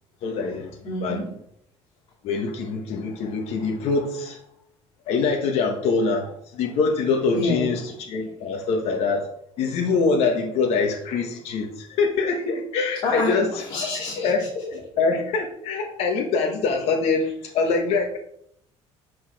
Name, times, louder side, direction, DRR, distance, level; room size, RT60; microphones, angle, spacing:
voice 1, 0.2-1.2 2.2-4.4 5.1-7.8 8.1-9.2 9.6-13.5 14.2-14.4 14.7-17.3 17.5-18.2, left 4 dB, 65° left, 1 dB, 1.3 m, -24 dB
voice 2, 0.8-1.3 7.3-7.7 13.0-14.6, left 3 dB, 50° left, -3 dB, 2.5 m, -27 dB
8.5 x 6.4 x 4.8 m, 0.72 s
cardioid pair, 165°, 11 cm